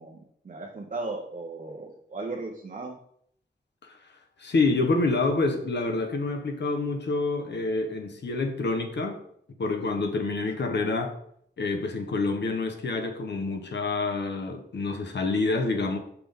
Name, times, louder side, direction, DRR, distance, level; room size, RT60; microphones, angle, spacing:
voice 1, 0.0-3.0, right 3 dB, 45° right, -2 dB, 0.8 m, -36 dB
voice 2, 4.4-9.2 9.6-11.1 11.6-16.0, left 3 dB, 70° left, 4 dB, 1.0 m, -27 dB
5.9 x 5.8 x 3.6 m, 0.68 s
wide cardioid pair, 140°, 19 cm